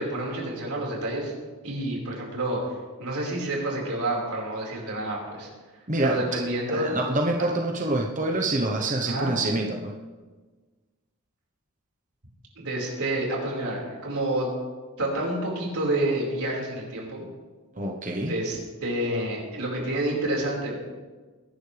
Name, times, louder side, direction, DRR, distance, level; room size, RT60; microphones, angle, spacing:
voice 1, 0.0-1.3 1.6-2.6 3.0-5.5 6.0-6.9 9.0-9.3 12.5-14.5 15.0-17.2 18.2-20.8, right 1 dB, 90° right, -2 dB, 4.9 m, -29 dB
voice 2, 5.9-6.3 6.7-9.9 17.7-18.4, right 2 dB, 35° right, 1 dB, 1.0 m, -26 dB
22.5 x 11.5 x 3.4 m, 1.3 s
head